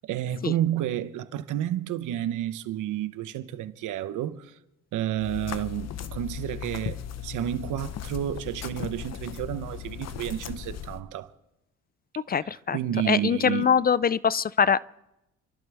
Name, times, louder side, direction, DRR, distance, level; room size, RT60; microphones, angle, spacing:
voice 1, 0.0-4.5 4.9-11.3 12.7-13.7, right 12 dB, 85° right, 0.9 m, -30 dB
sound 1, 5.2-11.0, left 9 dB, 60° left, 0.9 m, -37 dB
voice 2, 12.2-12.8 13.0-14.8, left 7 dB, 30° left, 0.4 m, -23 dB
30.0 x 12.5 x 3.5 m
cardioid pair, 90°, 30 cm